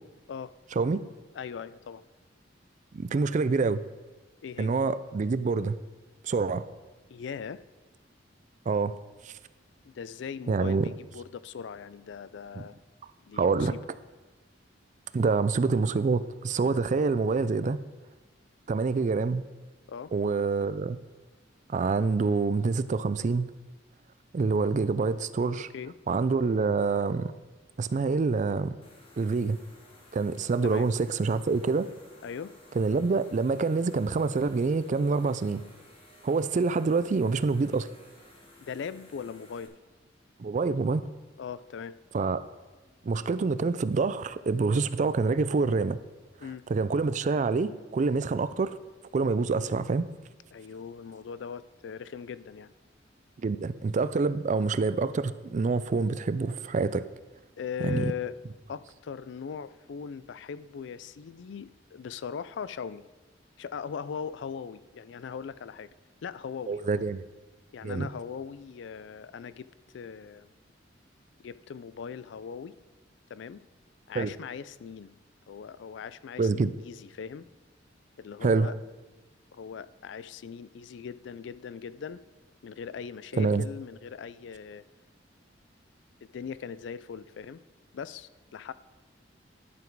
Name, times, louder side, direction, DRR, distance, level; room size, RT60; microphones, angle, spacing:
voice 1, 1.3-2.0 4.4-4.7 7.1-7.6 9.8-12.8 13.3-13.8 19.9-20.1 25.7-25.9 30.6-30.9 32.2-32.5 38.6-39.7 41.4-42.0 46.4-46.6 50.5-52.7 57.6-58.4 58.7-63.0 63.6-65.9 66.2-67.0 67.7-69.7 69.9-70.5 71.4-72.7 73.3-73.6 74.1-75.1 75.5-77.5 78.2-78.7 79.5-82.2 82.6-84.8 86.2-87.6 87.9-88.7, left 6 dB, 65° left, 16 dB, 0.4 m, -39 dB
voice 2, 2.9-3.8 4.6-5.8 6.2-6.7 8.7-9.0 9.2-9.3 10.5-10.9 12.6-12.7 13.3-13.7 15.1-17.8 18.7-19.4 20.1-21.0 21.7-23.5 24.3-25.7 26.1-27.3 27.8-28.8 29.2-29.6 30.1-31.9 32.8-35.6 36.2-37.9 40.4-41.1 42.1-42.4 43.0-46.0 46.7-48.8 49.1-50.1 53.4-57.1 57.8-58.0 66.7-67.2 67.8-68.1 74.1-74.3 76.4-76.7 78.4-78.7 83.4-83.6, right 4 dB, 40° right, 14 dB, 0.4 m, -26 dB
sound 1, 28.8-39.7, left 1 dB, 30° left, 1.6 m, -56 dB
11.0 x 7.2 x 4.6 m, 1.2 s
head